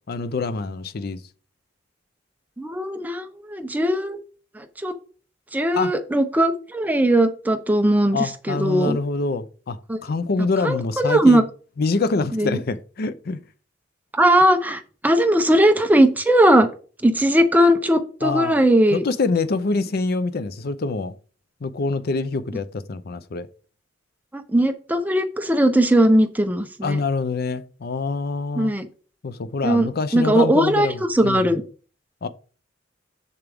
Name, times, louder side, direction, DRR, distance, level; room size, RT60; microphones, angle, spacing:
voice 1, 0.1-1.2 5.7-5.9 8.1-11.4 11.8-13.4 18.2-18.6 18.9-21.1 21.6-23.5 26.8-28.7 29.2-31.5 32.2-32.3, left 3 dB, 55° left, 0.5 m, -25 dB
voice 2, 2.6-4.2 4.6-4.9 5.5-9.0 9.9-10.0 10.6-11.4 12.3-12.6 14.2-16.7 17.0-19.0 24.3-27.0 28.6-28.9 29.6-31.6, right 1 dB, 10° right, 0.7 m, -19 dB
7.2 x 6.9 x 3.5 m
head